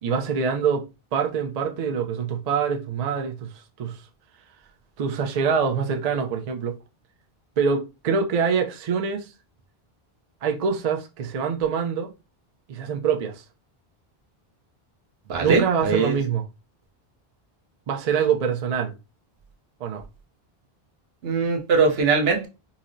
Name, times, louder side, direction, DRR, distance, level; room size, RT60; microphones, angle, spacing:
voice 1, 0.0-0.9 1.1-4.0 5.0-6.8 7.6-9.3 10.4-12.1 12.7-13.4 15.4-16.4 17.9-18.9 19.8-20.0, right 6 dB, 55° right, 0.5 m, -25 dB
voice 2, 15.3-16.2 21.2-22.5, right 4 dB, 75° right, 0.9 m, -21 dB
4.0 x 2.0 x 2.5 m
omnidirectional pair, 1.0 m